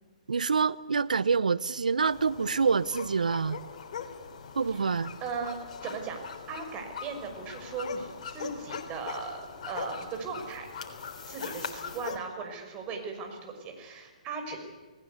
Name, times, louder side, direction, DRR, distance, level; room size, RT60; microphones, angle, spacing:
voice 1, 0.3-3.6 4.6-5.1, right 5 dB, 80° right, 17 dB, 0.8 m, -26 dB
sound 1, 2.0-12.2, left 6 dB, 55° left, 3.7 m, -41 dB
voice 2, 4.7-6.2 6.5-10.7 11.3-14.6, right 4 dB, 25° right, 3 dB, 5.9 m, -38 dB
28.5 x 18.5 x 8.1 m, 1.3 s
hypercardioid pair, 130°, 4 cm